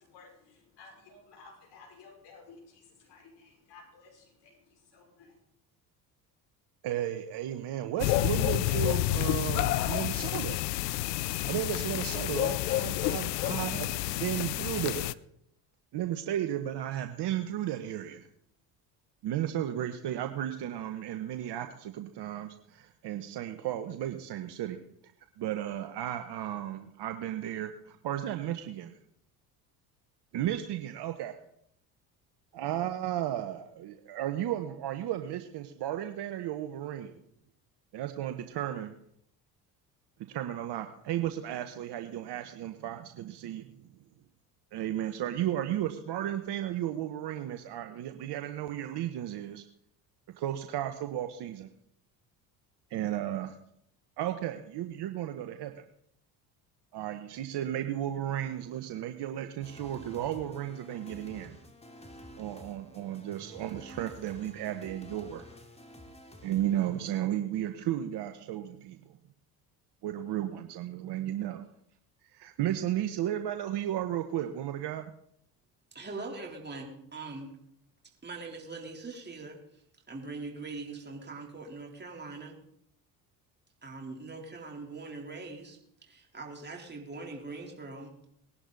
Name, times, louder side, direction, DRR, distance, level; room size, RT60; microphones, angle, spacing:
voice 1, 0.0-5.4, left 4 dB, 55° left, -1 dB, 5.8 m, -55 dB
voice 2, 6.8-10.6 11.4-15.2 15.9-18.3 19.2-24.8 25.4-29.0 30.3-31.3 32.5-37.2 37.9-39.0 40.3-43.7 44.7-49.6 50.4-51.7 52.9-53.6 54.2-55.8 56.9-61.6 62.4-65.5 66.4-69.2 70.0-71.6 72.2-75.1, right 12 dB, 55° right, 7 dB, 1.2 m, -34 dB
sound 1, 8.0-15.1, left 17 dB, 85° left, 0.6 m, -29 dB
sound 2, 59.6-67.1, equal, 15° left, 2.6 m, -50 dB
voice 3, 75.9-77.5 78.2-79.6 80.1-82.6 83.8-88.1, right 3 dB, 20° right, 0 dB, 3.9 m, -42 dB
19.5 x 11.5 x 4.1 m, 0.72 s
hypercardioid pair, 65°, 49 cm